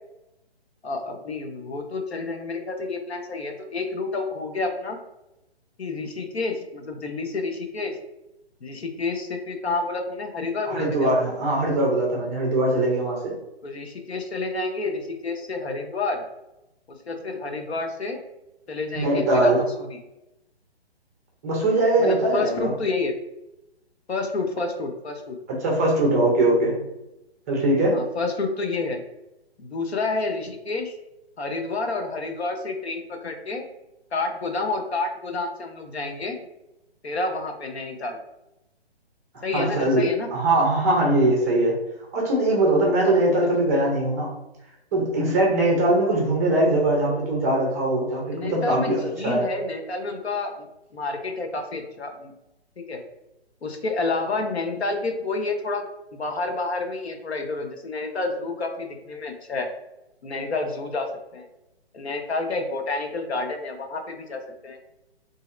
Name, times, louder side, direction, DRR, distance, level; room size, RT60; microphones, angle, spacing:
voice 1, 0.8-5.0 5.8-8.0 8.6-11.1 13.6-16.2 17.1-18.2 18.7-20.0 22.0-23.1 24.1-25.4 27.9-29.0 29.6-30.9 31.4-33.7 34.1-36.4 37.0-38.2 39.4-40.3 48.3-50.7 50.9-52.3 52.8-53.0 53.6-55.8 56.1-59.7 60.2-61.5 61.9-64.8, left 3 dB, 75° left, 4 dB, 0.8 m, -29 dB
voice 2, 10.7-13.3 18.9-19.6 21.4-22.7 25.5-26.8 27.5-28.0 39.5-41.8 42.1-44.3 44.9-49.5, right 1 dB, 15° right, -2 dB, 0.5 m, -21 dB
3.9 x 2.7 x 2.5 m, 0.91 s
figure-of-eight pair, 145°, 32 cm